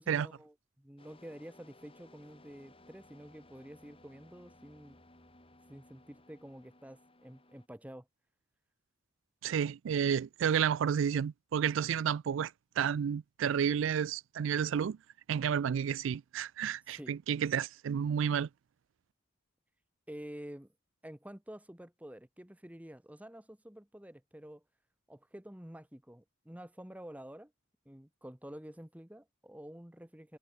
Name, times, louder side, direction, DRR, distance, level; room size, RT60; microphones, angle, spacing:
voice 1, 0.0-5.0 5.7-8.1 16.9-17.1 20.1-20.7 21.0-24.6 25.1-27.5 27.9-30.4, equal, 5° right, 1.1 m, -49 dB
sound 1, 1.0-7.7, left 2 dB, 25° left, 4.5 m, -60 dB
voice 2, 9.4-12.5 12.8-15.0 15.3-18.5, right 8 dB, 65° right, 0.3 m, -31 dB
head